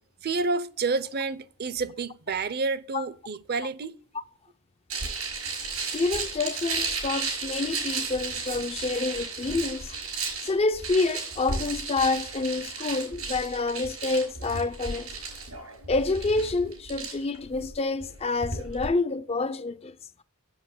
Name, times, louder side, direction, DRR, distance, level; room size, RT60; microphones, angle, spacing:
voice 1, 0.2-4.0, right 4 dB, 50° right, 0.6 m, -29 dB
sound 1, 4.9-18.9, right 4 dB, 90° right, 5.4 m, -34 dB
voice 2, 5.9-15.1 15.9-20.0, left 3 dB, 30° left, 0.4 m, -28 dB
7.9 x 7.7 x 6.7 m
head